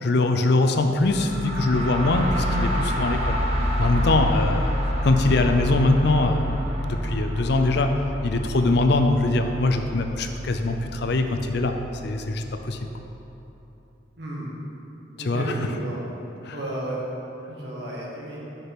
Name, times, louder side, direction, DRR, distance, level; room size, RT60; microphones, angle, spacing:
voice 1, 0.0-3.4 3.8-4.7 5.0-11.7 12.0-12.8 15.2-15.5 16.4-16.6, left 2 dB, 60° left, 6 dB, 0.5 m, -22 dB
sound 1, 0.9-12.6, equal, 35° right, 1.2 m, -28 dB
voice 2, 14.2-14.5 15.2-16.0 16.5-17.0 17.5-18.4, right 1 dB, 60° right, -5 dB, 1.7 m, -32 dB
6.0 x 5.6 x 6.0 m, 3.0 s
head